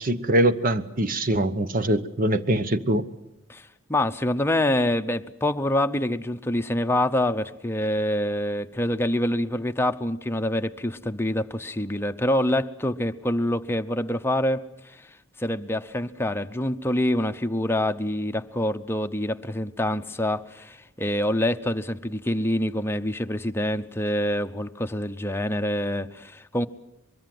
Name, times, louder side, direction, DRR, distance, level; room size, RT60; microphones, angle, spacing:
voice 1, 0.0-3.1, right 1 dB, 40° right, 12 dB, 1.1 m, -23 dB
voice 2, 3.5-15.0 15.4-26.7, left 1 dB, 10° left, 8 dB, 0.8 m, -26 dB
23.5 x 22.5 x 7.8 m, 0.85 s
head